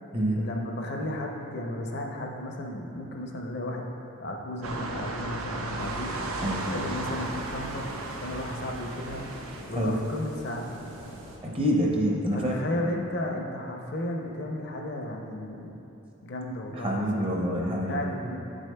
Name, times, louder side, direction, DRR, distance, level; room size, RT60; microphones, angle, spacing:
voice 1, 0.3-3.9 4.2-7.9 8.2-9.2 9.7-10.9 12.3-15.8 16.2-17.5 17.9-18.4, left 1 dB, 50° left, 1 dB, 0.5 m, -34 dB
sound 1, 4.6-9.6, right 2 dB, 85° right, 0.6 m, -35 dB
sound 2, 5.8-11.4, equal, 65° right, 1.2 m, -44 dB
voice 2, 11.4-12.5 16.8-18.1, equal, 25° right, -2 dB, 0.6 m, -26 dB
8.2 x 6.3 x 2.2 m, 2.8 s
head